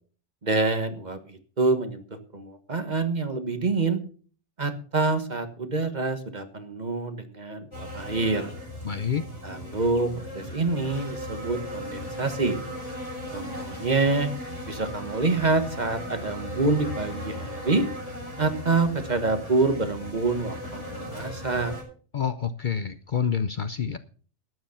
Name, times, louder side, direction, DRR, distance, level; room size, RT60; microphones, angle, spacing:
voice 1, 0.4-4.0 4.6-8.5 9.4-12.6 13.3-14.3 14.7-17.8 18.4-21.7, right 3 dB, 35° right, 8 dB, 1.5 m, -26 dB
sound 1, 7.7-21.8, left 1 dB, 70° left, 6.4 m, -37 dB
voice 2, 8.8-9.3 22.1-24.0, left 7 dB, 50° left, 12 dB, 0.7 m, -27 dB
12.5 x 9.3 x 5.7 m, 0.42 s
omnidirectional pair, 1.2 m